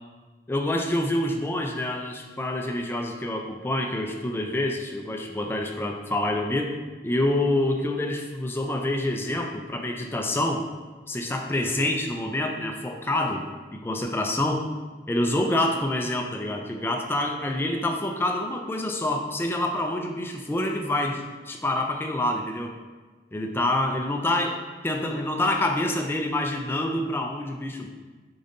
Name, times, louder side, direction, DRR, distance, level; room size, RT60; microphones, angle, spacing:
voice 1, 0.5-6.7 7.0-10.6 11.1-13.5 13.7-14.7 15.1-22.7 23.3-24.6 24.8-27.9, left 1 dB, 15° left, 3 dB, 0.3 m, -27 dB
5.1 x 3.8 x 2.6 m, 1.3 s
head